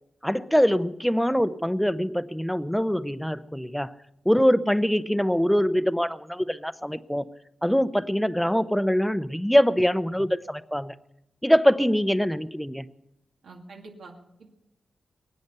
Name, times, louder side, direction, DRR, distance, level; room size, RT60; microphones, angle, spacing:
voice 1, 0.2-3.9 4.3-7.2 7.6-10.9 11.4-12.8, equal, ahead, 14 dB, 0.6 m, -23 dB
voice 2, 13.4-14.5, right 3 dB, 85° right, 1 dB, 2.2 m, -46 dB
22.0 x 9.4 x 6.7 m, 0.85 s
wide cardioid pair, 115°, 0 cm